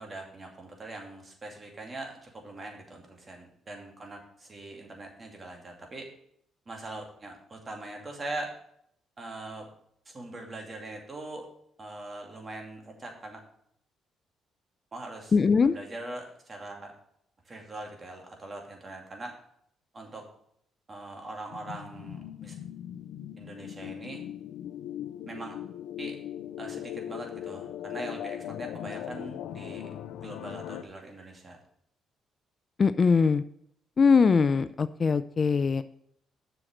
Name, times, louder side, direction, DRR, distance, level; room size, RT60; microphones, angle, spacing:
voice 1, 0.0-6.1 6.7-8.5 9.2-9.7 10.1-11.5 11.8-13.4 14.9-15.3 15.6-16.9 17.5-19.4 19.9-20.3 20.9-22.5 23.4-24.3 25.3-25.6 26.0-26.2 26.6-29.9 30.2-31.6, right 2 dB, 30° right, 1 dB, 2.5 m, -41 dB
voice 2, 15.3-15.8 32.8-33.4 34.0-35.8, left 5 dB, 40° left, 13 dB, 0.4 m, -22 dB
sound 1, 21.5-30.8, left 11 dB, 90° left, 0.6 m, -39 dB
7.6 x 6.4 x 6.3 m, 0.70 s
cardioid pair, 90°, 0 cm